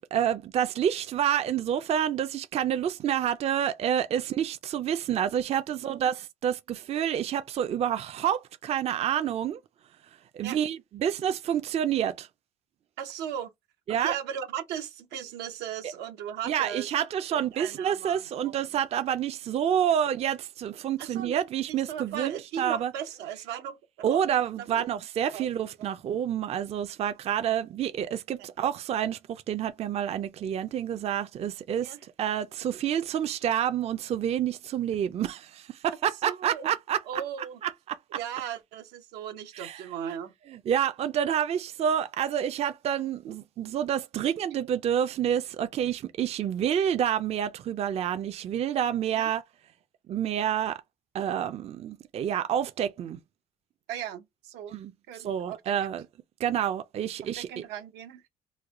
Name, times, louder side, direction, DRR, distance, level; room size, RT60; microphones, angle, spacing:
voice 1, 0.1-9.6 10.3-12.3 13.9-14.1 16.5-22.9 24.0-37.0 37.6-38.0 39.6-39.8 40.5-49.4 50.1-50.8 51.1-53.2 54.7-56.1 56.4-57.6, right 9 dB, 40° right, 0.4 m, -28 dB
voice 2, 13.0-13.5 13.9-16.9 17.3-18.7 21.0-21.3 21.9-23.8 24.1-24.2 24.6-24.9 25.3-25.5 31.8-32.0 36.2-36.7 37.1-37.6 38.1-40.3 43.2-43.3 49.1-49.3 53.9-54.8 55.1-55.7 57.2-58.2, right 9 dB, 90° right, 0.8 m, -37 dB
3.2 x 2.1 x 3.5 m
cardioid pair, 110°, 17 cm